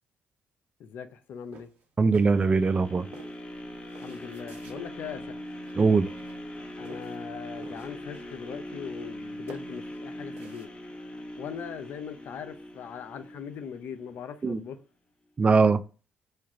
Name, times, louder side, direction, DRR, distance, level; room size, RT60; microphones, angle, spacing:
voice 1, 0.8-1.7 4.0-5.4 6.8-10.7 11.4-14.8, left 7 dB, 70° left, 0.6 m, -40 dB
sound 1, 1.5-2.7 3.1-4.9 5.6-5.8 6.1-7.2 7.5-8.5 8.8-9.2 9.5-10.7, right 4 dB, 75° right, 1.0 m, -51 dB
voice 2, 2.0-3.1 5.8-6.1 14.4-14.6 15.4-15.8, right 4 dB, 35° right, 0.4 m, -21 dB
sound 2, 2.1-14.2 14.7-14.8, equal, 35° left, 1.0 m, -41 dB
4.4 x 2.4 x 4.7 m
supercardioid pair, 55°, 4 cm